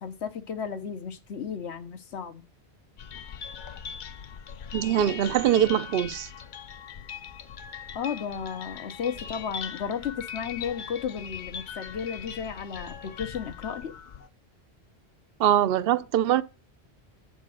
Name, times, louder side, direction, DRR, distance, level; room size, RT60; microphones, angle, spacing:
voice 1, 0.0-2.4 7.9-13.9, left 7 dB, 85° left, 1.2 m, -34 dB
sound 1, 3.0-14.3, left 7 dB, 55° left, 0.6 m, -40 dB
voice 2, 4.7-6.3 15.4-16.4, right 10 dB, 65° right, 0.7 m, -23 dB
8.4 x 4.4 x 6.3 m
omnidirectional pair, 1.1 m